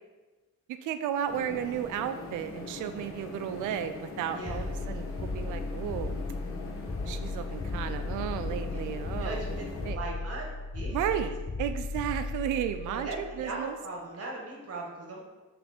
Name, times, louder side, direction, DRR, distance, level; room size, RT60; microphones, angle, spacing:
voice 1, 0.8-6.1 7.1-9.4 9.9-10.0 10.9-13.7, right 10 dB, 85° right, 10 dB, 0.5 m, -33 dB
sound 1, 1.3-9.9, left 3 dB, 45° left, 1.2 m, -41 dB
sound 2, 4.4-13.5, left 3 dB, 10° left, 0.4 m, -36 dB
voice 2, 9.2-10.4 10.7-11.3 12.8-15.2, right 3 dB, 50° right, -1 dB, 1.5 m, -39 dB
7.0 x 3.3 x 4.3 m, 1.2 s
cardioid pair, 90°, 30 cm